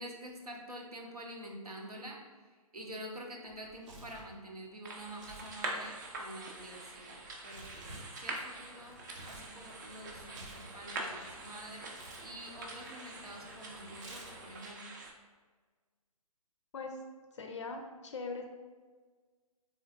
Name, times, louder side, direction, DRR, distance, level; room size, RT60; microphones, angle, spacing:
voice 1, 0.0-2.2 2.7-14.8, right 1 dB, 85° right, 0 dB, 0.8 m, -47 dB
Tearing, 3.5-4.3 5.1-5.6 5.8-9.5 9.9-11.4 11.9-12.3 13.9-14.6, right 2 dB, 55° right, 0.9 m, -52 dB
sound 1, 4.8-15.1, right 2 dB, 30° right, 0.5 m, -44 dB
sound 2, 8.9-14.5, left 1 dB, 10° left, 0.6 m, -58 dB
voice 2, 17.3-18.4, left 3 dB, 50° left, 4 dB, 0.4 m, -41 dB
3.8 x 3.2 x 2.4 m, 1.4 s
figure-of-eight pair, 135°, 19 cm